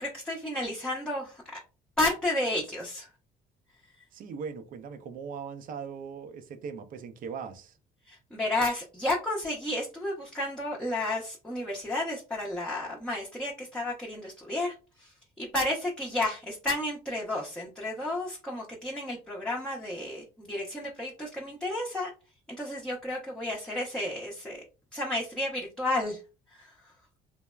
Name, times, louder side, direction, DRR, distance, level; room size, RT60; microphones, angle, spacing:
voice 1, 0.0-1.6 2.0-3.1 8.1-22.1 22.6-24.6 24.9-26.2 26.5-26.9, left 1 dB, 5° left, 0.7 m, -32 dB
voice 2, 4.1-7.7, right 6 dB, 55° right, 0.5 m, -39 dB
3.3 x 2.0 x 2.3 m
cardioid pair, 110°, 17 cm